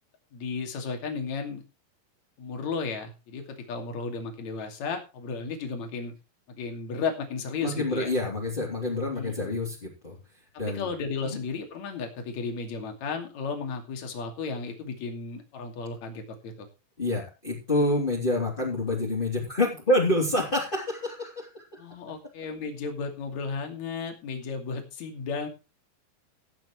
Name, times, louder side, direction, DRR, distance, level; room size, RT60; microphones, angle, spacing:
voice 1, 0.3-1.6 2.4-6.1 6.5-8.1 9.1-9.6 10.7-16.7 21.8-25.5, left 4 dB, 55° left, 4 dB, 3.7 m, -34 dB
voice 2, 7.6-10.2 10.6-10.9 17.0-21.8, left 1 dB, 15° left, -4 dB, 3.2 m, -27 dB
17.0 x 11.0 x 3.3 m, 0.29 s
omnidirectional pair, 4.0 m